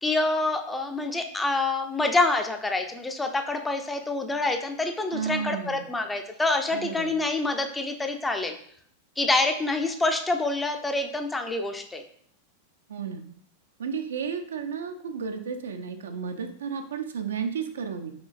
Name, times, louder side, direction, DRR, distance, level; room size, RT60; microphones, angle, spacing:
voice 1, 0.0-8.5 9.2-12.0, left 2 dB, 10° left, 5 dB, 0.4 m, -26 dB
voice 2, 5.1-5.9 6.7-7.1 12.9-13.3 13.8-18.1, right 6 dB, 65° right, 6 dB, 0.4 m, -32 dB
5.0 x 3.0 x 2.3 m, 0.63 s
figure-of-eight pair, 90°, 0 cm